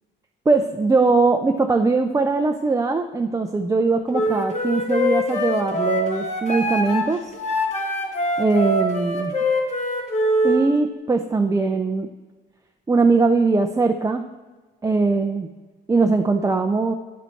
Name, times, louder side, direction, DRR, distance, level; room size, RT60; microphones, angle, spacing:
voice 1, 0.5-7.3 8.4-9.4 10.4-12.1 12.9-14.3 14.8-15.5 15.9-16.9, right 3 dB, 15° right, 4 dB, 0.4 m, -20 dB
Wind instrument woodwind instrument, 4.1-10.6, left 1 dB, 35° left, 1.5 m, -23 dB
9.3 x 4.0 x 4.4 m, 1.3 s
cardioid pair, 90°, 20 cm